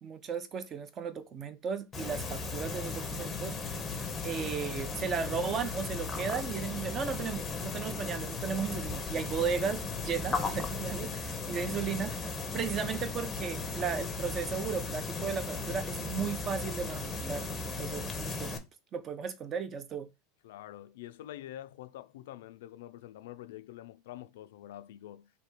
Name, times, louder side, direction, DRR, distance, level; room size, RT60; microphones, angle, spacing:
voice 1, 0.0-3.6 4.2-17.5 17.8-18.6 18.9-20.1, right 6 dB, 25° right, 0.5 m, -35 dB
sound 1, 1.9-18.6, left 4 dB, 15° left, 0.6 m, -36 dB
voice 2, 20.4-25.3, left 13 dB, 80° left, 0.4 m, -46 dB
3.4 x 2.7 x 4.4 m
supercardioid pair, 145°, 0 cm